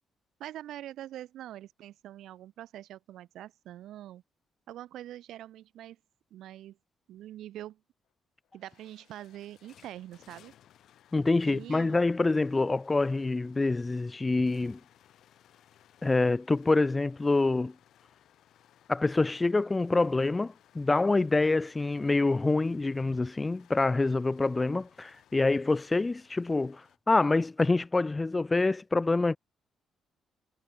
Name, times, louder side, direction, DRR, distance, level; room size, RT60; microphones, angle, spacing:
voice 1, 0.4-4.2 4.7-6.0 6.3-6.8 7.1-7.8 8.5-10.5 11.4-12.0, right 13 dB, 80° right, 0.7 m, -44 dB
sound 1, 8.1-8.2 8.4-27.0, left 11 dB, 75° left, 4.8 m, -62 dB
voice 2, 11.1-14.8 16.0-17.7 18.9-29.4, left 3 dB, 20° left, 0.5 m, -26 dB
cardioid pair, 90°, 0 cm